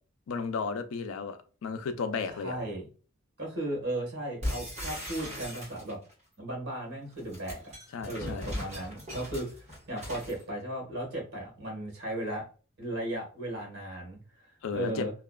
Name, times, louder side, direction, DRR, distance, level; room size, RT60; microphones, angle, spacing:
voice 1, 0.3-2.6 7.9-8.5 14.6-15.1, left 5 dB, 75° left, 0.4 m, -34 dB
voice 2, 2.3-2.9 3.4-6.0 6.4-7.7 8.1-9.5 9.9-12.4 12.8-14.2 14.7-15.1, right 1 dB, 55° right, 1.3 m, -36 dB
sound 1, 4.4-6.1 7.1-10.4, left 1 dB, 35° right, 1.4 m, -38 dB
2.7 x 2.3 x 2.2 m
head